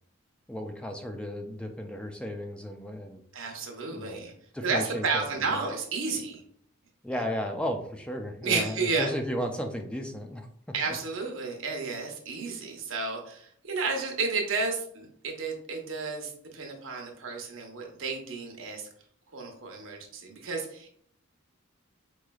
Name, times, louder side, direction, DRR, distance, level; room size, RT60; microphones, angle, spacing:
voice 1, 0.5-3.2 3.9-4.2 4.5-5.6 7.0-10.5 10.9-11.0, equal, 5° left, 4 dB, 0.3 m, -34 dB
voice 2, 3.3-4.3 4.6-6.4 8.4-9.1 10.7-18.9 19.3-21.0, right 4 dB, 75° right, 1 dB, 0.8 m, -32 dB
4.7 x 3.1 x 2.3 m, 0.64 s
head